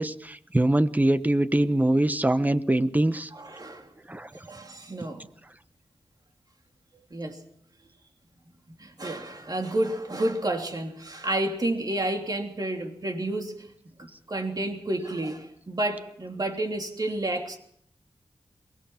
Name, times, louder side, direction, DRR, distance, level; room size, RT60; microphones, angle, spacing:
voice 1, 0.0-3.3 4.1-4.3, right 1 dB, 15° right, 12 dB, 1.1 m, -23 dB
voice 2, 3.3-3.9 4.3-5.3 7.1-7.4 8.7-13.7 14.0-17.6, right 1 dB, 40° right, 3 dB, 3.2 m, -30 dB
22.5 x 20.5 x 5.9 m, 0.69 s
wide cardioid pair, 75°, 10 cm